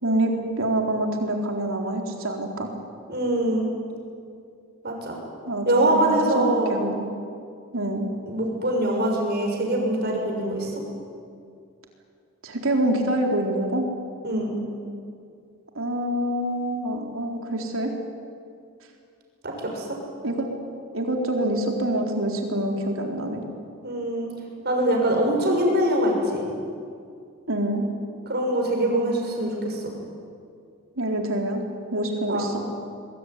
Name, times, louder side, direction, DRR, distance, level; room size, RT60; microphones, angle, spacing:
voice 1, 0.0-2.7 5.5-7.1 7.7-8.1 12.4-13.9 15.8-17.9 20.2-20.5 20.9-23.4 27.5-27.9 31.0-31.6 31.9-32.6, right 1 dB, 70° right, 2 dB, 4.1 m, -26 dB
voice 2, 3.1-3.7 4.8-5.2 5.6-6.8 8.3-10.8 14.2-14.6 19.4-19.9 23.8-24.3 24.6-26.4 28.3-29.9 32.3-32.5, right 1 dB, 50° right, 1 dB, 6.5 m, -23 dB
24.0 x 22.0 x 9.7 m, 2.4 s
head